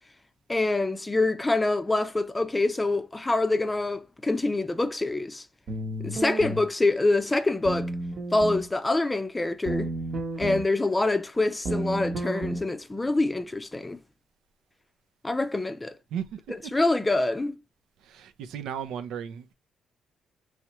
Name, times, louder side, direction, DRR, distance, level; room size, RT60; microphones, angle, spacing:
voice 1, 0.5-5.4 6.0-7.9 8.3-9.9 10.4-14.0 15.2-16.0 16.7-17.5, left 2 dB, 15° left, 0.5 m, -25 dB
sound 1, 5.7-6.6 7.6-8.7 9.7-10.6 11.6-12.6, right 1 dB, 60° right, 0.9 m, -31 dB
voice 2, 18.0-19.5, right 8 dB, 85° right, 0.5 m, -35 dB
4.6 x 3.2 x 2.9 m
cardioid pair, 90°, 0 cm